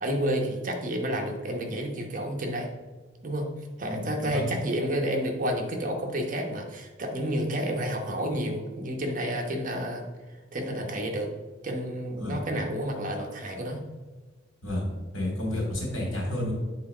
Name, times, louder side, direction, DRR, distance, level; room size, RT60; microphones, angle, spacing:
voice 1, 0.0-2.7 3.2-3.5 3.8-10.1 10.5-11.3 11.6-13.8, equal, 45° right, 2 dB, 1.1 m, -30 dB
voice 2, 3.9-4.4 12.2-12.4 14.6-14.8 15.1-16.5, left 1 dB, 80° left, -1 dB, 2.5 m, -31 dB
8.4 x 3.9 x 4.9 m, 1.3 s
head